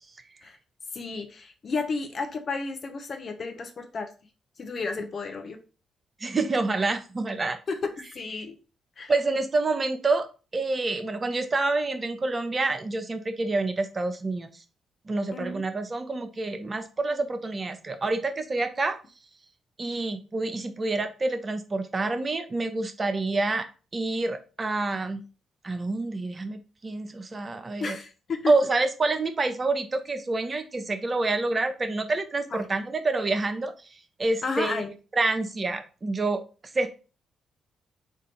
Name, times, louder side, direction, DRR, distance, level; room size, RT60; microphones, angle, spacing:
voice 1, 0.9-4.1 4.6-5.6 7.7-8.5 9.0-9.1 15.3-15.6 27.8-28.5 32.5-32.6 34.4-34.9, left 4 dB, 50° left, 6 dB, 0.8 m, -32 dB
voice 2, 6.2-7.6 9.1-14.5 15.1-19.0 19.8-25.2 25.6-28.0 28.5-33.7 34.2-36.4 36.7-36.9, right 3 dB, 35° right, 8 dB, 0.6 m, -27 dB
3.6 x 2.5 x 4.3 m, 0.34 s
hypercardioid pair, 40°, 0 cm